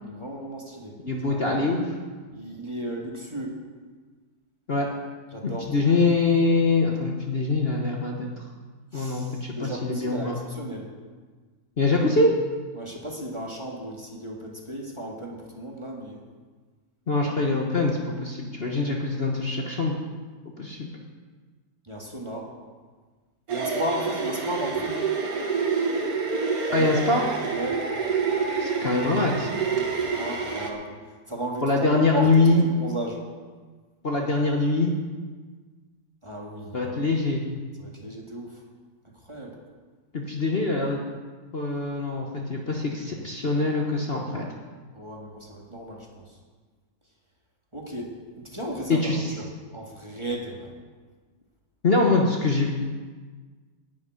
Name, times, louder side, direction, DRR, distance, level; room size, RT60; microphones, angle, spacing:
voice 1, 0.0-1.0 1.2-1.4 2.3-3.6 5.3-6.1 8.9-10.9 12.7-16.2 21.8-22.5 23.5-25.0 26.7-27.1 27.5-27.9 29.7-33.3 36.2-37.0 37.8-38.6 39.2-39.6 44.9-46.4 47.7-50.7, right 1 dB, 20° right, -2 dB, 1.7 m, -35 dB
voice 2, 1.0-1.9 4.7-4.9 5.4-8.3 8.9-10.4 11.8-12.3 17.1-19.9 20.6-20.9 26.7-27.2 28.6-29.5 31.6-32.6 34.0-34.9 36.7-37.4 40.1-41.0 41.5-44.5 48.9-49.3 51.8-52.7, left 3 dB, 40° left, 0 dB, 1.2 m, -23 dB
sound 1, 23.5-30.7, right 5 dB, 60° right, 1.9 m, -27 dB
10.5 x 7.3 x 9.4 m, 1.4 s
omnidirectional pair, 1.8 m